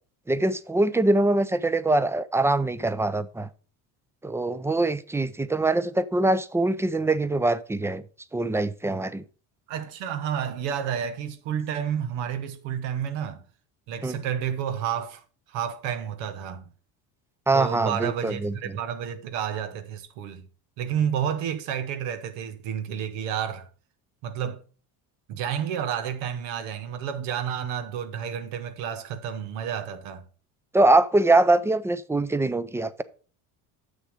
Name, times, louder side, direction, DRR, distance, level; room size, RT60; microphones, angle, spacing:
voice 1, 0.3-3.5 4.2-8.0 8.3-9.2 14.0-14.1 17.5-18.5 30.7-33.0, right 2 dB, 5° right, 0.4 m, -23 dB
voice 2, 9.7-13.4 13.9-15.2 15.5-16.6 17.5-20.4 20.8-23.7 24.2-24.6 25.3-30.3, right 8 dB, 80° right, 1.1 m, -30 dB
7.4 x 6.6 x 4.9 m
cardioid pair, 105°, 44 cm